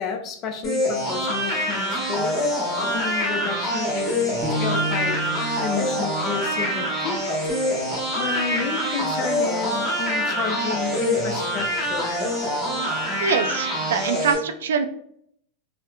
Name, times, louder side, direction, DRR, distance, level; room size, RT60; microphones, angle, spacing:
voice 1, 0.0-2.4 2.8-5.2 5.6-7.2 8.2-12.3, left 6 dB, 40° left, 4 dB, 0.5 m, -31 dB
sound 1, 0.6-14.3, equal, 15° left, 1.3 m, -25 dB
sound 2, 4.4-8.6, equal, 25° right, 0.7 m, -33 dB
voice 2, 13.2-14.9, right 6 dB, 80° right, 8 dB, 0.3 m, -24 dB
3.0 x 2.0 x 2.3 m, 0.65 s
hypercardioid pair, 120°, 0 cm